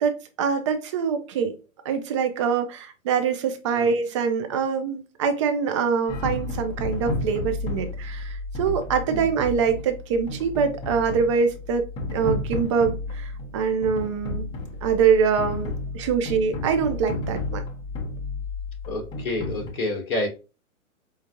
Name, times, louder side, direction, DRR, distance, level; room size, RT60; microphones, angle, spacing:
voice 1, 0.0-1.5 1.8-14.5 14.8-17.6, right 6 dB, 25° right, 0.5 m, -24 dB
sound 1, 6.1-19.7, left 2 dB, 10° left, 0.9 m, -32 dB
voice 2, 18.9-20.3, left 2 dB, 40° left, 1.1 m, -28 dB
5.4 x 2.5 x 2.6 m
figure-of-eight pair, 115°, 42 cm